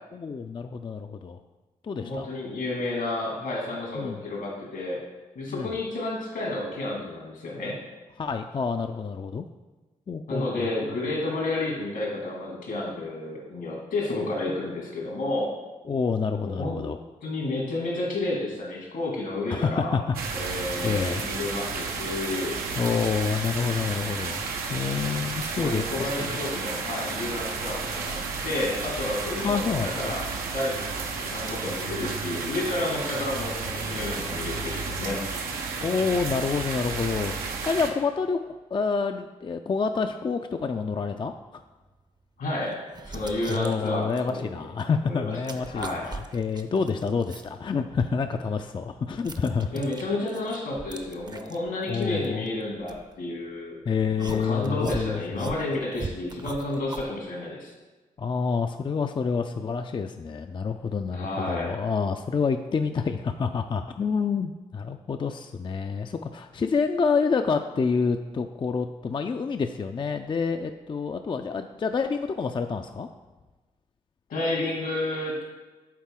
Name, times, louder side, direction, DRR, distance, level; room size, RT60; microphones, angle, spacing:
voice 1, 0.1-1.4 1.8-2.3 3.9-4.2 5.5-5.7 8.2-9.4 10.1-10.7 15.9-17.0 19.5-20.2 20.4-21.2 22.8-26.4 29.4-30.1 35.8-37.3 37.7-41.6 43.5-49.7 51.9-52.5 53.9-55.5 58.2-73.1, left 5 dB, 35° left, 6 dB, 0.4 m, -28 dB
voice 2, 2.0-5.0 5.4-7.8 10.3-15.5 16.4-16.8 17.2-20.0 20.3-22.6 25.6-31.0 31.3-35.2 42.4-42.8 43.1-44.7 45.0-46.0 49.7-53.8 54.2-57.7 61.1-61.7 74.3-75.4, left 2 dB, 75° left, -2 dB, 2.0 m, -31 dB
sound 1, 20.1-37.9, right 4 dB, 85° right, 0.7 m, -32 dB
sound 2, 41.9-42.0 42.7-45.0 45.3-47.5 48.0-53.6 54.2-57.1, right 3 dB, 30° right, 0.6 m, -40 dB
7.4 x 4.1 x 3.7 m, 1.2 s
supercardioid pair, 45°, 15 cm